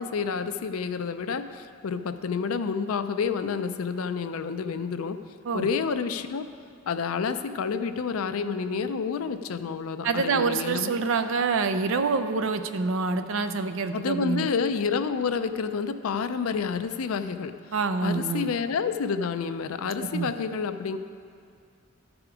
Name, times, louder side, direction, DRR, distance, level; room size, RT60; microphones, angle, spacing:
voice 1, 0.0-5.2 5.5-6.4 6.9-10.9 13.9-17.5 18.0-21.0, left 5 dB, 80° left, 10 dB, 0.4 m, -29 dB
voice 2, 10.0-14.5 17.7-18.5 20.1-20.3, right 4 dB, 65° right, 9 dB, 0.5 m, -26 dB
13.5 x 4.9 x 4.9 m, 2.4 s
head